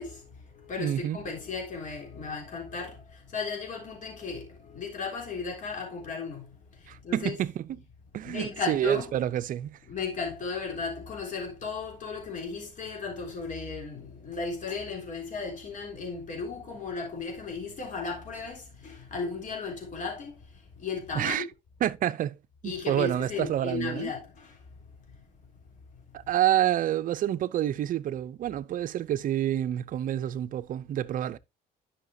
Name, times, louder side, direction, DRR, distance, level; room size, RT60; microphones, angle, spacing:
voice 1, 0.0-7.4 8.2-9.1 9.9-21.4 22.6-24.6 25.1-25.2, left 4 dB, 50° left, 3.4 m, -35 dB
voice 2, 0.8-1.2 6.9-7.5 8.1-9.8 21.1-21.5 21.8-22.4 22.6-24.1 26.1-31.4, right 11 dB, 55° right, 0.5 m, -28 dB
11.0 x 5.7 x 2.7 m
cardioid pair, 110°, 17 cm